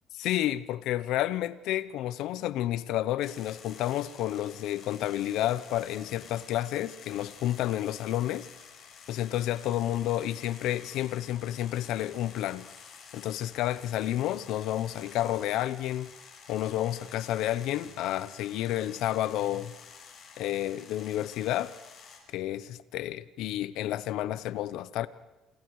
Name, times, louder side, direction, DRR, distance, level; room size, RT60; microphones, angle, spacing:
voice 1, 0.2-8.5 9.1-12.7 13.1-16.1 16.5-19.7 20.4-21.8 22.3-25.1, left 13 dB, 75° left, 0.9 m, -30 dB
sound 1, 3.2-22.2, left 6 dB, 50° left, 6.6 m, -51 dB
29.5 x 27.5 x 4.9 m
cardioid pair, 135°, 0 cm